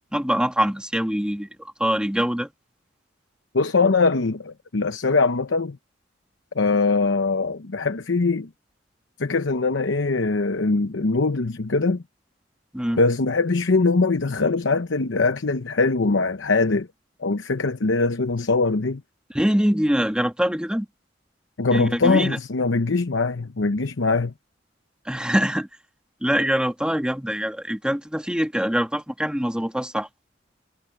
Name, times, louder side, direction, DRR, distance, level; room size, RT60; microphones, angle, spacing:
voice 1, 0.1-1.5 1.8-2.5 12.7-13.0 19.3-20.9 21.7-22.4 25.0-25.7 26.2-30.1, equal, 5° right, 1.6 m, -23 dB
voice 2, 3.5-5.8 6.5-8.5 9.2-12.0 13.0-16.9 17.2-19.0 21.6-24.3, left 3 dB, 90° left, 0.9 m, -22 dB
head